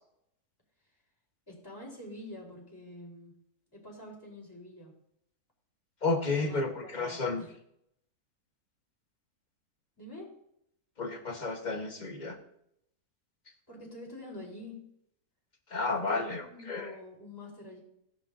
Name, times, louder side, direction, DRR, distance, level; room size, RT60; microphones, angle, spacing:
voice 1, 1.5-3.3 3.7-4.9 6.3-7.5 10.0-10.3 13.7-14.9 16.1-17.8, left 1 dB, 15° left, -3 dB, 4.1 m, -46 dB
voice 2, 6.0-7.4 11.0-12.4 15.7-16.9, left 3 dB, 30° left, 5 dB, 1.3 m, -32 dB
17.5 x 10.5 x 2.7 m, 0.74 s
omnidirectional pair, 1.7 m